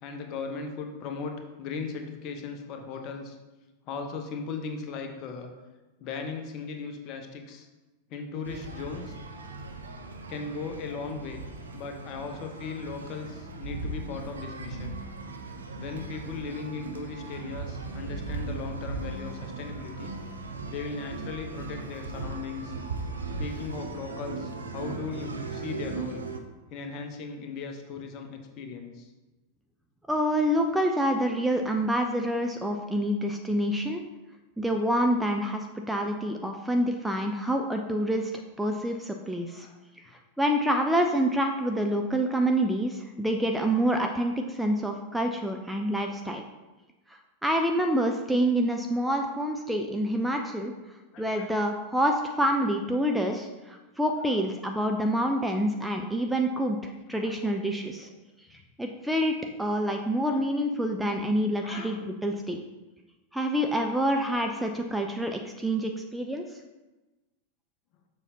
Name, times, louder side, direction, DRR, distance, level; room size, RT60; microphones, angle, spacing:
voice 1, 0.0-3.4 3.9-5.5 6.0-7.7 8.1-9.2 10.3-11.4 11.7-15.0 15.8-20.2 20.7-22.7 23.4-26.2 26.7-29.1 39.5-39.8 51.1-51.6 54.2-54.4 57.1-57.6 58.0-58.1 60.3-60.7 61.6-62.0, left 4 dB, 40° left, 4 dB, 0.9 m, -38 dB
sound 1, 8.4-26.4, right 3 dB, 70° right, 0.6 m, -38 dB
voice 2, 30.1-34.0 34.6-38.3 38.6-39.7 40.4-46.4 47.1-50.7 51.2-58.1 58.5-62.6 63.3-66.4, equal, 5° right, 3 dB, 0.4 m, -27 dB
6.9 x 5.5 x 2.8 m, 1.1 s
figure-of-eight pair, 90°, 0 cm